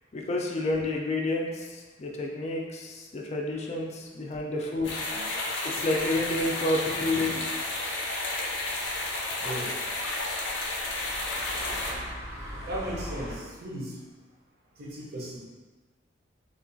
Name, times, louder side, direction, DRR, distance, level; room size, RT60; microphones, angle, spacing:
voice 1, 0.1-5.0 5.7-7.4, left 2 dB, 35° left, -1 dB, 0.4 m, -29 dB
sound 1, 4.8-11.9, left 2 dB, 90° left, 0.5 m, -32 dB
sound 2, 5.0-13.4, equal, 15° right, 0.6 m, -43 dB
voice 2, 7.1-7.4 9.4-9.8 12.7-14.0 14.8-15.4, right 1 dB, 55° right, -3 dB, 0.6 m, -37 dB
3.5 x 2.3 x 2.6 m, 1.3 s
head